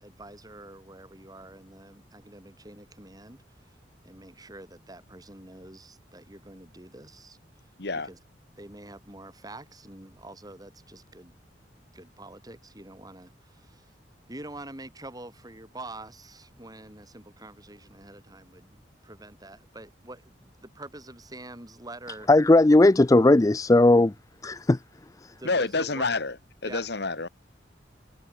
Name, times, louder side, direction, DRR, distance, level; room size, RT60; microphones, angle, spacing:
voice 1, 0.0-3.7 4.0-7.4 8.0-8.2 8.6-11.3 11.9-13.9 14.3-22.3 25.4-26.1 26.6-26.9, right 2 dB, 20° right, 4.8 m, -46 dB
voice 2, 7.8-8.1 25.4-26.3 26.6-27.3, left 3 dB, 65° left, 1.7 m, -28 dB
voice 3, 22.3-24.1 24.4-24.8 25.2-25.3, left 2 dB, 20° left, 0.4 m, -17 dB
head